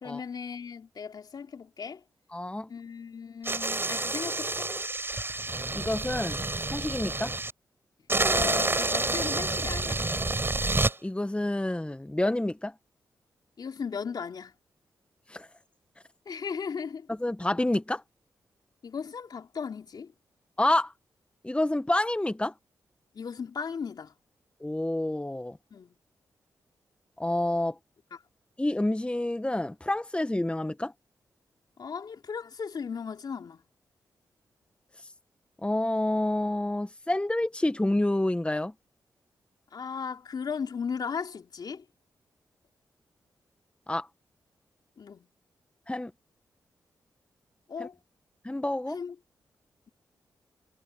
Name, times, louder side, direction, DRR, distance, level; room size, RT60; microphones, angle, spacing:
voice 1, 0.0-2.0 2.7-4.7 8.2-10.0 13.6-14.5 16.3-17.1 18.8-20.1 23.1-24.1 25.7-26.0 28.1-28.2 31.8-33.6 39.7-41.8 45.0-45.3 47.7-48.0 48.9-49.2, left 6 dB, 65° left, 3.6 m, -36 dB
voice 2, 2.3-2.7 5.7-7.3 11.0-12.7 15.3-15.5 17.2-18.0 20.6-20.9 21.4-22.5 24.6-25.6 27.2-27.7 28.6-30.9 35.6-38.7 43.9-44.1 45.9-46.1 47.8-47.9 48.4-49.0, left 1 dB, 15° left, 1.5 m, -28 dB
sound 1, 3.4-7.5 8.1-10.9, right 2 dB, 30° right, 6.5 m, -28 dB
supercardioid pair, 40°, 8 cm